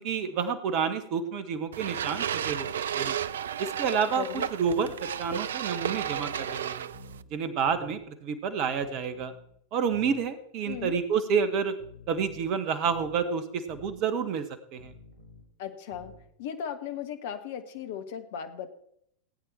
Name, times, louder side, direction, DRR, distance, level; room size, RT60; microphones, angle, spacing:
voice 1, 0.0-2.7 2.9-3.2 3.6-4.9 5.2-6.9 7.3-9.3 9.7-11.7 12.1-14.5 14.7-14.9, right 6 dB, 40° right, 11 dB, 1.4 m, -29 dB
sound 1, 1.7-7.2, right 9 dB, 65° right, 0.4 m, -33 dB
voice 2, 4.2-4.5 10.7-11.0 15.6-16.1 16.4-18.7, left 9 dB, 55° left, 8 dB, 1.5 m, -36 dB
sound 2, 4.7-5.0 5.8-6.5 6.9-7.3 7.7-8.0 8.8-9.5 9.9-10.2 10.7-11.0 11.8-12.5 12.9-13.2 13.7-14.0 14.8-15.5 15.9-16.3, left 3 dB, 85° left, 3.6 m, -49 dB
17.5 x 9.1 x 4.4 m, 0.71 s
figure-of-eight pair, 90°, 0 cm